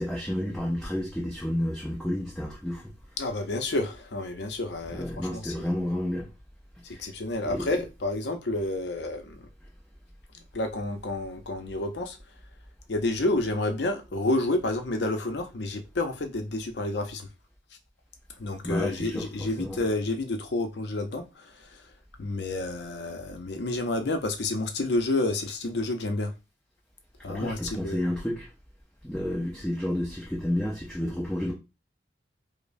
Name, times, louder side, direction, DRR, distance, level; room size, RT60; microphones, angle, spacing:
voice 1, 0.0-2.9 4.9-6.3 6.9-7.1 7.4-7.8 18.6-19.8 27.3-28.5 29.0-31.5, left 1 dB, 5° left, 0.6 m, -31 dB
voice 2, 3.2-5.5 7.0-9.5 10.3-12.2 12.9-17.3 18.4-21.8 22.2-26.3 27.2-28.1, left 2 dB, 70° left, 0.6 m, -30 dB
5.0 x 2.1 x 2.6 m
head